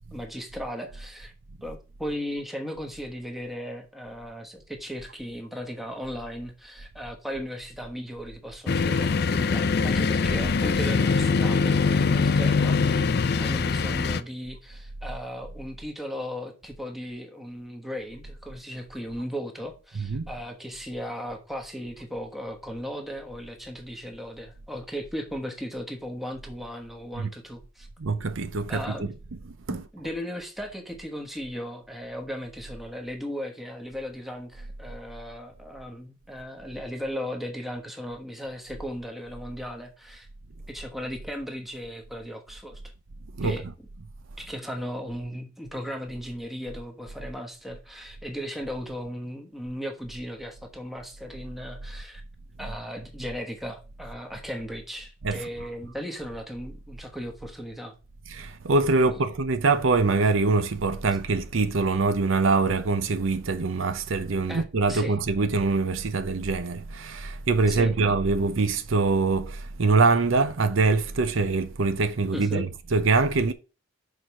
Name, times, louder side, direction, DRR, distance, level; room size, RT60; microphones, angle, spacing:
voice 1, 0.1-1.3 1.6-27.9 28.7-29.1 29.7-40.3 40.7-42.9 43.4-43.7 44.4-52.2 52.6-57.9 58.9-59.3 64.5-64.6 64.9-65.1 67.7-68.0 72.3-72.7, equal, ahead, 1.1 m, -36 dB
sound 1, 8.7-14.2, left 4 dB, 50° left, 0.5 m, -23 dB
voice 2, 19.9-20.3 27.1-27.3 28.0-29.9 43.4-43.6 52.6-52.7 55.2-55.5 58.3-73.5, right 3 dB, 65° right, 0.6 m, -24 dB
6.5 x 4.6 x 5.3 m
head